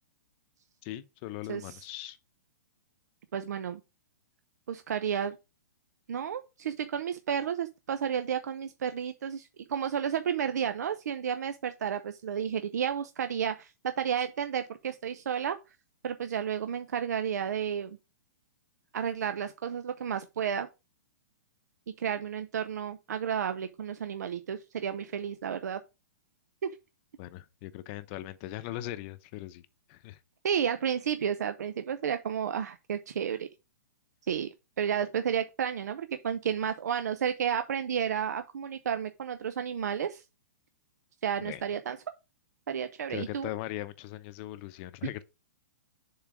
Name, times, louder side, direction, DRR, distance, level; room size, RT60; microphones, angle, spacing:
voice 1, 0.8-2.2 27.2-30.2 33.3-33.4 41.4-41.6 43.1-45.2, left 15 dB, 40° left, 0.7 m, -40 dB
voice 2, 3.3-3.8 4.7-5.4 6.1-15.6 16.0-18.0 18.9-20.7 22.0-25.8 26.6-26.7 30.4-33.5 34.3-34.5 34.8-40.2 41.2-42.0 42.7-43.5, right 8 dB, 75° right, 0.7 m, -32 dB
7.1 x 3.8 x 4.8 m
hypercardioid pair, 135°, 9 cm